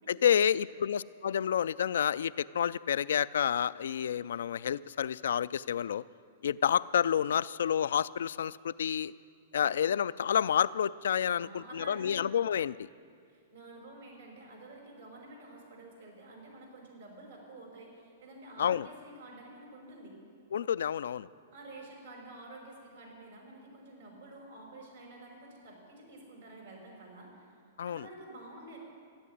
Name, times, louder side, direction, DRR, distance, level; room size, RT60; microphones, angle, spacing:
voice 1, 0.1-6.0 6.4-9.1 9.5-12.9 18.6-18.9 20.5-21.3 27.8-28.1, left 9 dB, 75° left, 18 dB, 0.3 m, -29 dB
voice 2, 11.3-12.2 13.3-20.2 21.5-27.5 27.8-28.8, right 2 dB, 85° right, -1 dB, 4.6 m, -50 dB
14.0 x 8.5 x 10.0 m, 2.2 s
hypercardioid pair, 125°, 0 cm